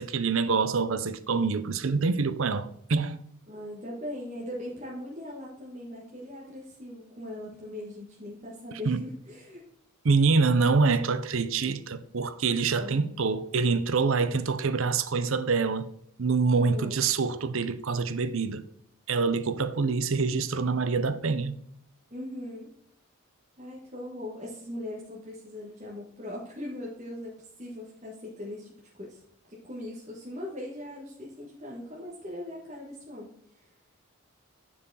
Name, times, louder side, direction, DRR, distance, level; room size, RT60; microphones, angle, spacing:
voice 1, 0.0-3.2 8.9-9.0 10.0-15.9 16.2-18.6 19.1-21.6, right 4 dB, 65° right, 0.6 m, -26 dB
voice 2, 3.5-9.6 12.7-13.2 16.5-17.0 22.1-22.7 23.6-29.2 29.5-33.7, left 1 dB, 30° right, 1.6 m, -40 dB
10.0 x 4.8 x 4.1 m
head